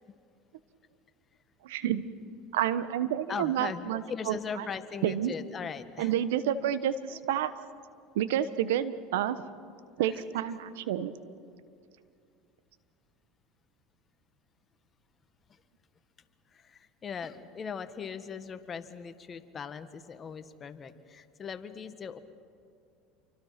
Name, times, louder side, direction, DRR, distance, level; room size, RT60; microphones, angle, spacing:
voice 1, 1.6-2.0 2.5-4.6 5.0-5.3 6.0-7.5 8.1-9.4 10.0-11.1, right 10 dB, 85° right, 13 dB, 1.2 m, -29 dB
voice 2, 3.3-6.1 10.0-10.2 16.5-22.2, left 6 dB, 30° left, 10 dB, 1.6 m, -39 dB
29.0 x 24.5 x 6.0 m, 2.4 s
supercardioid pair, 100°, 0 cm